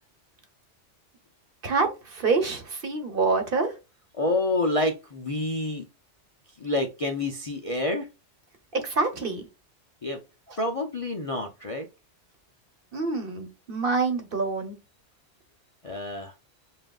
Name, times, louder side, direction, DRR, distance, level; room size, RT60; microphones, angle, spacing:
voice 1, 1.6-3.7 8.8-9.5 10.5-10.6 12.9-14.7, right 4 dB, 50° right, 1.1 m, -26 dB
voice 2, 4.2-5.8 6.6-8.1 10.0-10.2 10.6-11.9 15.8-16.3, left 2 dB, 40° left, 0.5 m, -28 dB
7.4 x 2.5 x 2.3 m
omnidirectional pair, 1.2 m